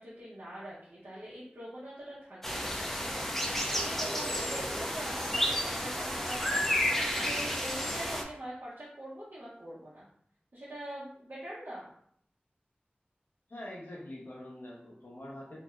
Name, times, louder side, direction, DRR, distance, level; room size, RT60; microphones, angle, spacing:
voice 1, 0.0-3.2 3.7-10.1 10.5-11.9, right 1 dB, 70° right, -9 dB, 0.7 m, -43 dB
sound 1, 2.4-8.2, equal, 10° left, 0.5 m, -31 dB
voice 2, 13.5-15.6, left 1 dB, 85° left, -4 dB, 0.9 m, -44 dB
3.0 x 2.6 x 2.3 m, 0.65 s
wide cardioid pair, 45°, 4 cm